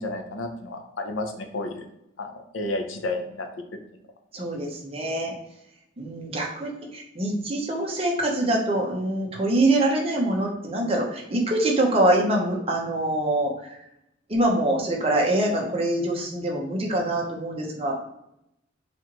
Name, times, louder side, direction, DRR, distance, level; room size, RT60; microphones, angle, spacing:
voice 1, 0.0-1.8 2.2-3.5, left 2 dB, 85° left, 4 dB, 0.6 m, -31 dB
voice 2, 4.3-5.3 6.0-13.8 14.3-17.9, right 1 dB, 30° right, -1 dB, 0.8 m, -24 dB
4.2 x 2.5 x 2.9 m, 0.80 s
head